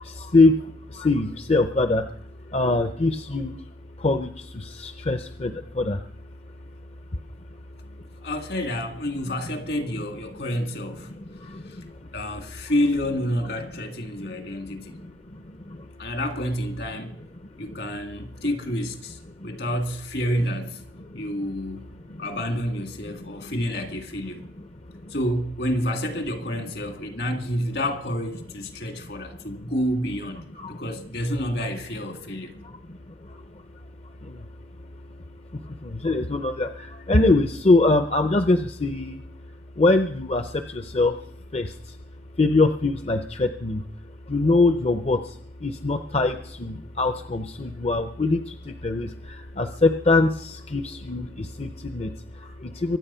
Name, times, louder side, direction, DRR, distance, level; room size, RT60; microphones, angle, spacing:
voice 1, 0.0-3.7 4.0-6.1 6.4-6.5 7.1-7.2 7.5-7.6 9.3-9.4 11.1-12.1 14.2-14.3 14.9-15.9 17.6-17.8 19.4-19.6 21.1-21.4 22.2-22.3 23.1-23.5 24.8-25.1 30.6-30.8 32.6-34.5 34.8-35.2 35.5-42.0 42.4-53.0, left 2 dB, 35° left, 0.6 m, -24 dB
voice 2, 7.8-11.1 11.6-11.8 12.1-15.0 16.0-17.2 17.6-20.8 21.1-21.9 22.2-24.5 25.1-30.4 30.7-32.6, equal, 65° left, 2.1 m, -29 dB
23.5 x 8.8 x 5.6 m
head